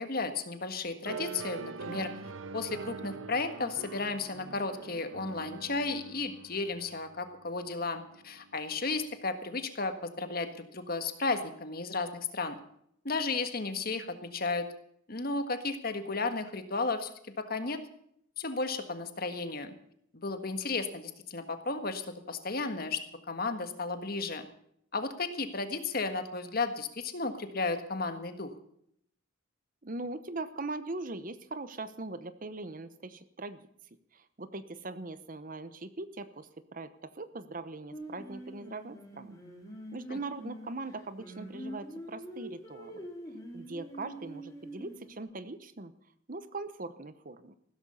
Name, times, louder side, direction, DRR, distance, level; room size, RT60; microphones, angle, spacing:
voice 1, 0.0-2.1 2.5-12.6 13.0-14.7 15.1-17.8 18.4-19.7 20.1-23.0 23.3-24.5 24.9-28.5 40.1-40.2, left 3 dB, 50° left, 8 dB, 1.6 m, -34 dB
sound 1, 1.0-8.9, right 4 dB, 85° right, 0.7 m, -44 dB
voice 2, 29.8-33.7 34.1-39.3 39.9-43.1 43.5-45.9 46.3-47.5, right 2 dB, 45° right, 13 dB, 0.9 m, -41 dB
Singing, 37.9-45.2, equal, 15° left, 3.7 m, -45 dB
15.5 x 13.5 x 5.6 m, 0.69 s
head